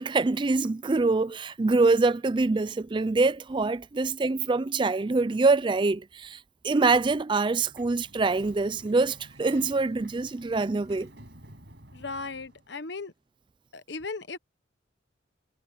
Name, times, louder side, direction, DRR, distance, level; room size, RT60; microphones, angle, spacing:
voice 1, 0.0-11.1, right 3 dB, 25° right, 0.4 m, -25 dB
Sliding door, 7.5-12.7, right 1 dB, 60° right, 5.6 m, -51 dB
voice 2, 11.9-13.1 13.7-14.4, left 3 dB, 60° left, 1.1 m, -36 dB
head